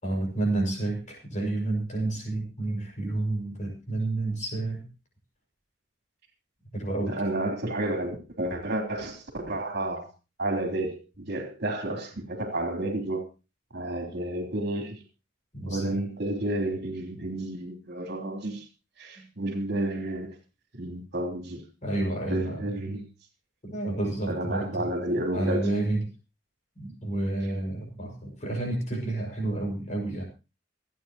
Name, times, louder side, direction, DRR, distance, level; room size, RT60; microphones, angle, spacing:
voice 1, 0.0-4.9 6.7-7.2 15.5-16.0 19.2-19.3 21.8-22.7 23.6-24.9 25.3-26.0 26.8-30.2, right 2 dB, 40° left, 0 dB, 5.8 m, -30 dB
voice 2, 7.1-10.1 10.4-13.2 13.7-15.0 15.7-18.7 19.0-20.3 20.7-21.6 22.3-23.0 24.3-25.7, right 1 dB, 60° right, 3 dB, 3.6 m, -31 dB
26.5 x 9.2 x 3.0 m, 0.30 s
head